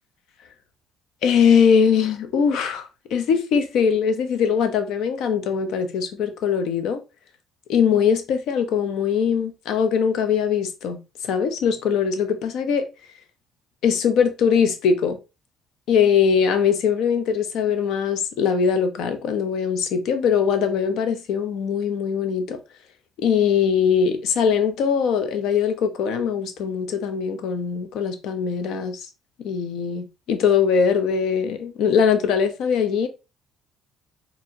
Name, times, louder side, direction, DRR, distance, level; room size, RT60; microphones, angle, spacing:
voice 1, 1.2-2.8 3.1-7.0 7.7-12.8 13.8-15.2 15.9-22.6 23.2-29.1 29.4-33.1, left 7 dB, 75° left, 0.8 m, -21 dB
4.3 x 2.8 x 2.9 m
supercardioid pair, 75°, 0 cm